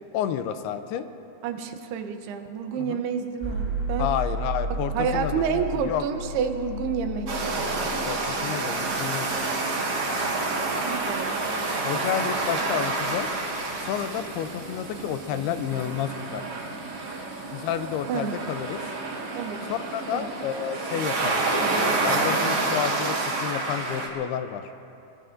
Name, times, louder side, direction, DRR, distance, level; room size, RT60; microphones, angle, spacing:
voice 1, 0.1-1.1 2.8-3.0 4.0-6.0 7.8-9.3 11.8-13.3 13.8-16.4 17.5-18.8 19.7-21.4 21.9-24.6, left 9 dB, 80° left, 9 dB, 2.6 m, -30 dB
voice 2, 1.4-4.1 4.9-7.5 10.8-11.4 18.1-18.5 19.4-19.7 20.1-20.3, right 7 dB, 80° right, 6 dB, 2.9 m, -29 dB
sound 1, 3.4-19.3, equal, 10° right, 1.8 m, -37 dB
sound 2, 7.3-24.1, right 3 dB, 50° right, 1.9 m, -28 dB
23.5 x 22.0 x 2.6 m, 2.8 s
omnidirectional pair, 4.7 m